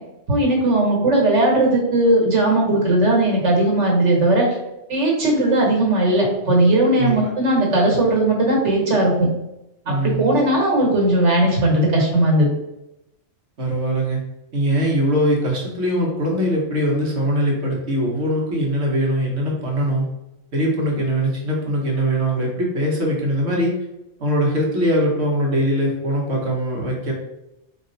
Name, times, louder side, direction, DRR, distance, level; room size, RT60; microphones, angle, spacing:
voice 1, 0.3-4.5 4.9-9.3 10.0-12.5, right 1 dB, 85° right, -1 dB, 1.7 m, -17 dB
voice 2, 9.8-10.4 13.6-14.2 14.5-20.0 20.5-23.7 24.2-27.1, equal, 65° right, -2 dB, 1.4 m, -21 dB
4.2 x 3.0 x 3.8 m, 0.91 s
omnidirectional pair, 1.2 m